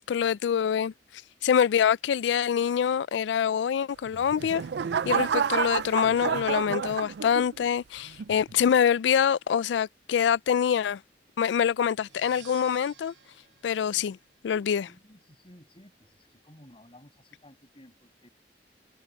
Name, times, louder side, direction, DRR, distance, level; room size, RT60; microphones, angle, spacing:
voice 1, 0.1-0.9 1.4-4.6 5.0-11.0 11.4-13.1 13.6-14.2 14.4-14.9, left 8 dB, 85° left, 0.3 m, -25 dB
sound 1, 4.1-7.6 8.2-8.5, right 7 dB, 65° right, 0.4 m, -29 dB
sound 2, 11.9-14.8, right 10 dB, 85° right, 2.0 m, -53 dB
voice 2, 14.9-18.3, left 1 dB, 30° left, 6.3 m, -55 dB
head